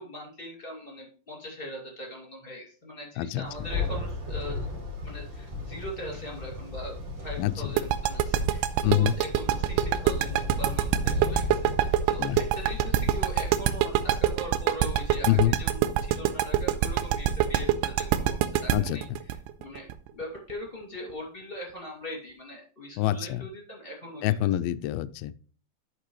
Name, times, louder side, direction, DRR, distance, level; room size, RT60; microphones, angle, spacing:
voice 1, 0.0-4.7 5.0-19.9 20.1-24.3, left 1 dB, 20° left, -1 dB, 1.6 m, -41 dB
Thunder, 3.4-14.2, left 3 dB, 35° right, 4.0 m, -35 dB
voice 2, 7.4-7.7 8.8-9.1 12.2-12.4 15.3-15.5 18.7-19.0 23.0-23.5 24.2-25.4, left 13 dB, 85° left, 13 dB, 2.1 m, -25 dB
sound 1, 7.8-20.5, right 12 dB, 85° right, 2.6 m, -25 dB
13.0 x 5.3 x 3.1 m, 0.40 s
omnidirectional pair, 4.8 m